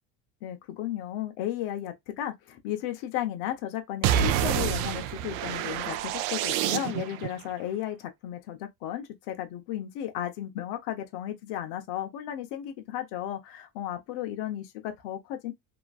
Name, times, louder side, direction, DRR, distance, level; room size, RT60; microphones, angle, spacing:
voice 1, 0.4-15.5, left 12 dB, 65° left, 0.8 m, -34 dB
sound 1, 4.0-7.3, right 10 dB, 65° right, 0.5 m, -27 dB
3.0 x 2.5 x 2.3 m
cardioid pair, 155°, 42 cm